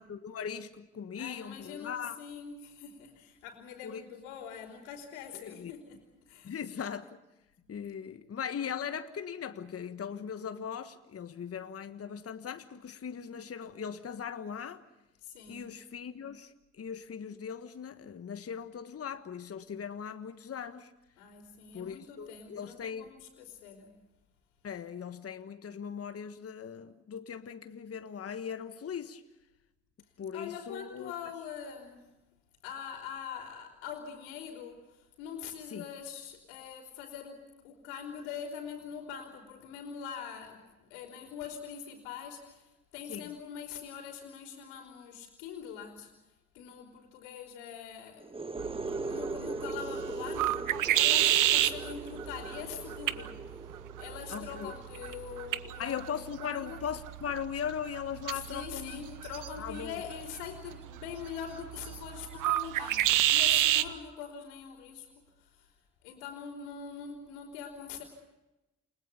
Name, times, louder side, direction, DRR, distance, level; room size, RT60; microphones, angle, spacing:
voice 1, 0.0-2.2 3.8-4.0 5.5-5.7 6.4-7.1 7.7-14.8 15.5-20.9 21.7-23.1 24.6-29.2 30.2-31.1 35.7-35.8 43.1-43.3 54.3-54.7 55.8-59.0 59.6-60.0, left 7 dB, 45° left, 1.5 m, -39 dB
voice 2, 1.2-6.5 7.6-7.7 15.2-15.7 21.2-24.0 30.3-32.1 32.6-46.1 46.5-48.4 48.9-53.6 54.0-56.1 56.4-56.8 58.3-65.1 65.4-65.7 66.0-68.0, left 7 dB, 80° left, 4.0 m, -43 dB
sound 1, 48.2-55.7, right 3 dB, 15° right, 0.9 m, -40 dB
sound 2, 48.6-63.9, right 13 dB, 65° right, 1.2 m, -31 dB
29.5 x 20.0 x 7.1 m
hypercardioid pair, 45°, 34 cm